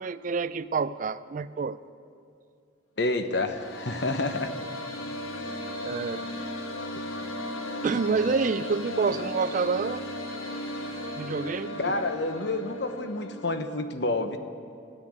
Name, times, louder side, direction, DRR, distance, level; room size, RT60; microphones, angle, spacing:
voice 1, 0.0-1.8 5.8-6.2 7.8-10.0 10.4-10.5 11.2-11.9, right 4 dB, 40° right, 15 dB, 0.3 m, -28 dB
voice 2, 3.0-4.5 11.8-14.4, left 2 dB, 55° left, 8 dB, 0.9 m, -29 dB
sound 1, 3.3-13.5, left 1 dB, 85° left, 1.4 m, -36 dB
15.0 x 9.8 x 8.9 m, 2.4 s
head